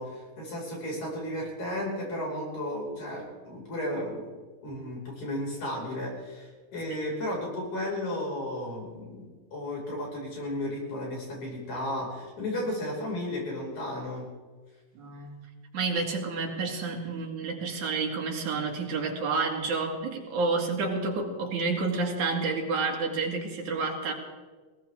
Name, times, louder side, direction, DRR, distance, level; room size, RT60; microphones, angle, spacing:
voice 1, 0.0-4.3 4.6-14.3, left 1 dB, 55° left, -3 dB, 6.8 m, -34 dB
voice 2, 14.9-15.5 15.7-24.1, right 4 dB, 60° right, 0 dB, 3.5 m, -29 dB
21.0 x 18.5 x 3.7 m, 1.4 s
omnidirectional pair, 4.1 m